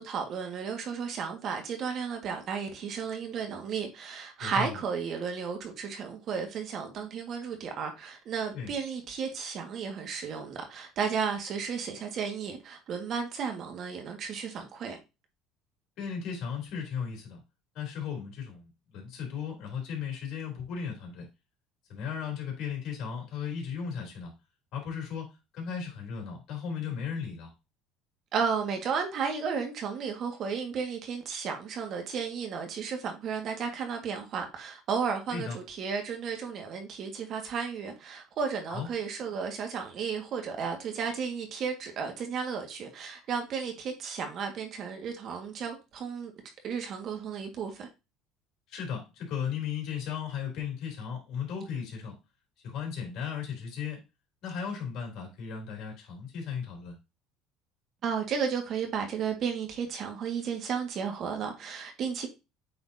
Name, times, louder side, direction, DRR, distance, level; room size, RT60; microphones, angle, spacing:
voice 1, 0.0-15.0 28.3-46.3 46.6-47.9 58.0-62.3, right 6 dB, 50° right, 1.8 m, -33 dB
voice 2, 4.4-4.8 8.5-8.7 16.0-17.4 17.7-21.3 21.9-24.3 24.7-27.5 35.3-35.6 38.7-38.9 48.7-52.1 52.6-54.0 54.4-56.9, left 7 dB, 60° left, 3.5 m, -36 dB
8.1 x 4.3 x 2.8 m
supercardioid pair, 110°, 0 cm